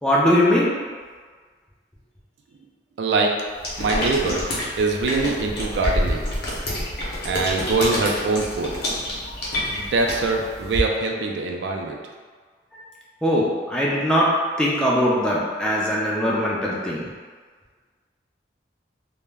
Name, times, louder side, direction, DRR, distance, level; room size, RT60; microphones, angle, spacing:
voice 1, 0.0-0.8 13.2-14.3 14.6-17.1, equal, 5° left, -6 dB, 0.4 m, -21 dB
voice 2, 3.0-3.4 3.8-4.5 4.8-6.2 7.2-8.7 9.7-12.0, right 3 dB, 70° right, 1 dB, 0.3 m, -23 dB
sound 1, 3.6-10.8, left 1 dB, 60° left, 0.7 m, -28 dB
2.2 x 2.0 x 3.3 m, 1.5 s
head